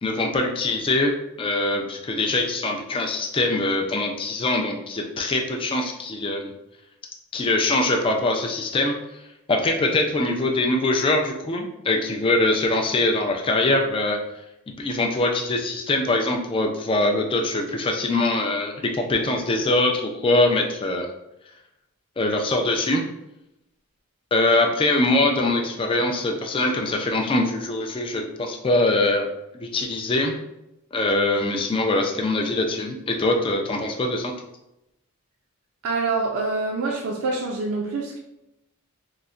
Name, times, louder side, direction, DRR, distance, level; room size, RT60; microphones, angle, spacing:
voice 1, 0.0-1.1 1.4-6.5 7.3-9.0 9.5-14.2 14.7-21.1 22.2-23.0 24.3-29.3 29.6-30.4 30.9-34.3, left 2 dB, 25° left, 2 dB, 0.3 m, -23 dB
voice 2, 35.8-38.2, right 3 dB, 70° right, 0 dB, 0.4 m, -26 dB
3.8 x 2.1 x 2.4 m, 0.89 s
head